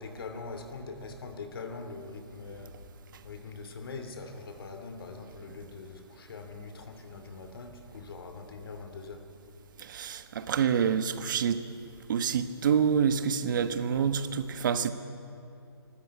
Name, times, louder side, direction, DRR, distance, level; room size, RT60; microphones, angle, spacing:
voice 1, 0.0-3.0 3.2-9.3, left 4 dB, 60° left, 6 dB, 2.7 m, -42 dB
voice 2, 9.8-11.6 12.1-14.9, right 7 dB, 50° right, 11 dB, 1.2 m, -27 dB
27.0 x 13.5 x 8.6 m, 2.5 s
hypercardioid pair, 160°, 14 cm